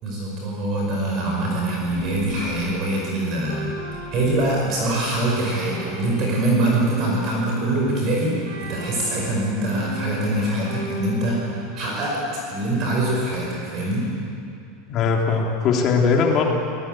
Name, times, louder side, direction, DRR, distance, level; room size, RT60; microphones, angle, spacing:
voice 1, 0.0-12.2 12.5-14.1, right 1 dB, 30° right, -2 dB, 5.2 m, -24 dB
sound 1, 1.9-7.9 8.5-11.7, right 1 dB, 60° right, 7.1 m, -36 dB
voice 2, 14.9-16.5, left 5 dB, 30° left, 0 dB, 3.2 m, -20 dB
26.0 x 19.0 x 9.1 m, 2.5 s
supercardioid pair, 180°, 0 cm